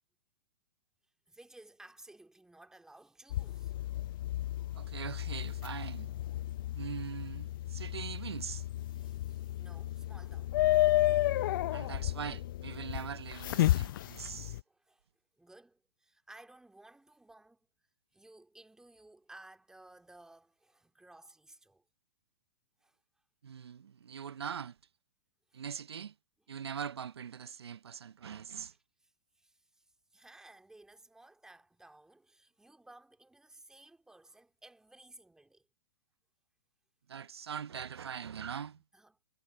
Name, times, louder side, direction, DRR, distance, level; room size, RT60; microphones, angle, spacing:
voice 1, 1.3-3.7 8.9-10.6 14.7-15.1 15.4-17.7 18.1-21.8 22.8-23.0 25.5-25.6 29.0-35.7 38.9-39.3, right 2 dB, 5° right, 2.4 m, -57 dB
sound 1, 3.3-14.6, left 15 dB, 55° left, 0.5 m, -32 dB
voice 2, 4.7-6.1 6.7-8.6 11.7-14.6 23.4-24.8 25.5-26.1 26.5-28.7 37.1-38.8, right 7 dB, 80° right, 0.9 m, -42 dB
hypercardioid pair, 125°, 13 cm